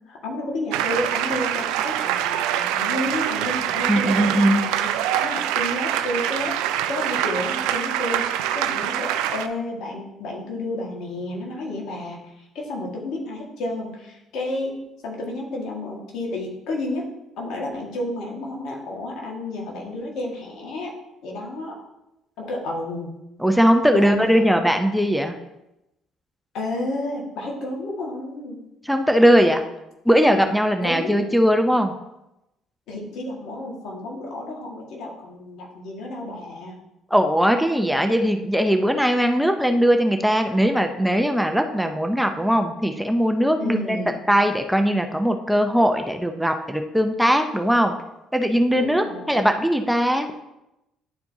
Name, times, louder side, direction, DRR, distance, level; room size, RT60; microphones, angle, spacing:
voice 1, 0.1-4.9 5.2-6.5 6.9-14.8 15.0-17.1 17.4-20.9 21.2-21.8 22.4-23.2 23.9-24.5 26.5-28.6 30.8-31.3 32.9-36.8 43.6-44.2 48.8-49.4, left 1 dB, 70° left, -1 dB, 1.7 m, -31 dB
sound 1, 0.7-9.5, right 11 dB, 75° right, 0.4 m, -25 dB
voice 2, 3.9-4.6 23.4-25.3 28.8-29.6 30.1-31.9 37.1-44.0 44.3-47.9 48.3-50.3, equal, ahead, 5 dB, 0.6 m, -20 dB
10.5 x 4.4 x 2.7 m, 0.91 s
hypercardioid pair, 55°, 0 cm